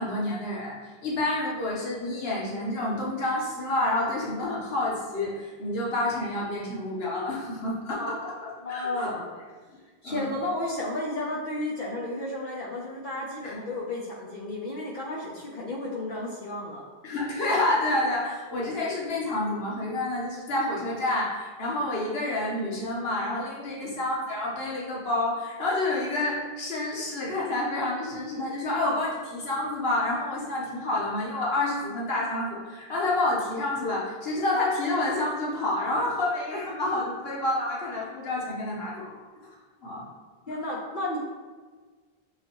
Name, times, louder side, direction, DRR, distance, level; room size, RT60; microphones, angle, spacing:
voice 1, 0.0-9.1 10.0-10.3 13.4-13.5 17.0-39.2 39.8-40.0 40.5-40.6, left 2 dB, 75° left, -4 dB, 1.3 m, -29 dB
voice 2, 8.6-9.3 10.0-16.8 23.8-23.9 40.5-41.2, left 1 dB, 55° left, -4 dB, 0.8 m, -33 dB
5.4 x 3.3 x 2.9 m, 1.4 s
omnidirectional pair, 1.0 m